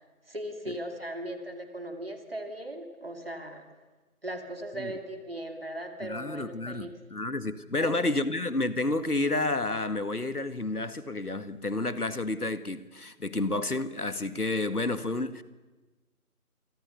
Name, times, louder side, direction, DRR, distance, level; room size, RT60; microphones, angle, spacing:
voice 1, 0.3-3.7 4.2-6.9 7.8-8.0, right 1 dB, 40° right, 2.6 m, -38 dB
voice 2, 6.0-15.4, left 2 dB, 75° left, 1.8 m, -30 dB
28.0 x 24.0 x 6.8 m
figure-of-eight pair, 170°, 45 cm